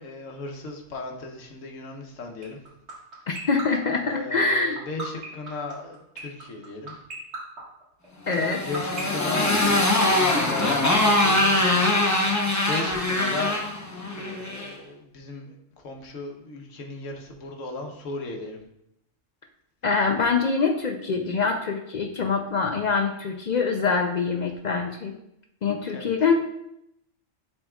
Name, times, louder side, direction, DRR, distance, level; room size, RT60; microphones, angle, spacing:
voice 1, 0.0-2.6 4.0-7.0 8.6-11.5 12.7-13.7 14.2-15.6 15.8-18.6 25.9-26.1, left 3 dB, 85° left, 3 dB, 1.3 m, -36 dB
sound 1, 2.4-12.0, right 4 dB, 60° right, 1.9 m, -36 dB
voice 2, 3.3-4.8 8.3-8.6 19.8-25.1 25.6-26.3, left 4 dB, 60° left, 3 dB, 0.4 m, -24 dB
Motorcycle, 8.3-14.7, left 2 dB, 15° left, 0.6 m, -23 dB
10.5 x 4.0 x 2.3 m, 0.80 s
omnidirectional pair, 1.3 m